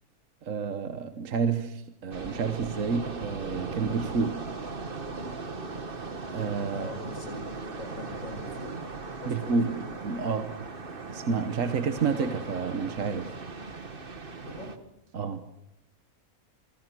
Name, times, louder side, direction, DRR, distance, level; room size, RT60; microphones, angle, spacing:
voice 1, 0.4-4.4 6.3-6.9 9.2-9.7 10.0-10.5 11.1-13.3 15.1-15.4, right 5 dB, 65° right, 9 dB, 1.5 m, -29 dB
sound 1, 2.1-14.8, right 3 dB, 40° right, 1.8 m, -38 dB
voice 2, 6.7-7.5 7.8-8.8 9.2-9.8 14.4-14.8, left 1 dB, 60° left, 4 dB, 6.4 m, -41 dB
27.5 x 23.0 x 6.2 m, 0.80 s
omnidirectional pair, 1.5 m